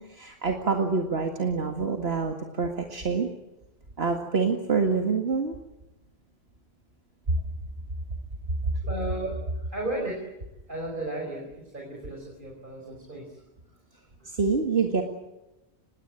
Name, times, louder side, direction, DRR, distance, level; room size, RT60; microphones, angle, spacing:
voice 1, 0.0-3.3 4.0-5.6 7.3-7.4 14.2-15.0, right 4 dB, 65° right, 3 dB, 2.2 m, -26 dB
voice 2, 8.8-10.2 10.7-13.4 14.2-14.3, right 1 dB, 50° right, 0 dB, 5.4 m, -34 dB
26.5 x 21.0 x 9.1 m, 0.99 s
omnidirectional pair, 1.1 m